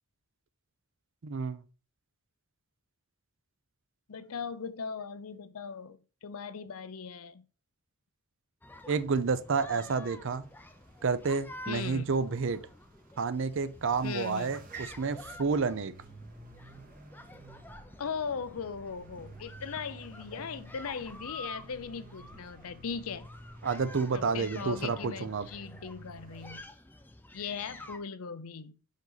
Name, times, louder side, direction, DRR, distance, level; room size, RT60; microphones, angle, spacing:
voice 1, 1.2-1.6 8.9-10.4 11.0-12.6 13.2-15.9 23.6-25.5, right 4 dB, 55° right, 0.5 m, -30 dB
voice 2, 4.1-7.4 11.7-12.2 14.0-14.6 18.0-23.3 24.1-26.6 27.3-28.8, left 6 dB, 75° left, 0.6 m, -39 dB
sound 1, 8.6-28.0, left 1 dB, 10° left, 0.5 m, -50 dB
sound 2, 8.9-26.6, right 3 dB, 40° right, 0.9 m, -52 dB
5.2 x 5.2 x 4.0 m
head